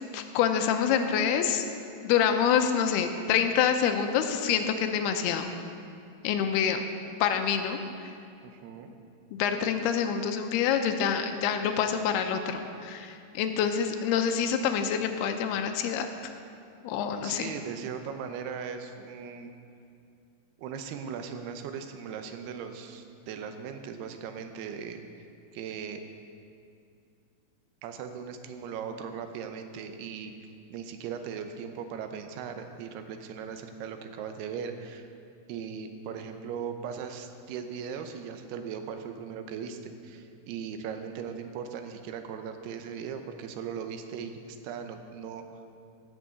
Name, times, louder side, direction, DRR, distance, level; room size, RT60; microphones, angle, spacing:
voice 1, 0.1-1.7 2.0-5.6 6.2-6.8 7.2-8.1 9.3-16.1 16.8-17.5, left 8 dB, 90° left, 7 dB, 2.7 m, -26 dB
voice 2, 8.4-8.9 17.2-19.5 20.6-25.3 25.5-26.0 27.8-35.1 35.5-45.4, right 7 dB, 85° right, 7 dB, 2.8 m, -38 dB
16.5 x 6.2 x 6.9 m, 2.5 s
omnidirectional pair, 4.6 m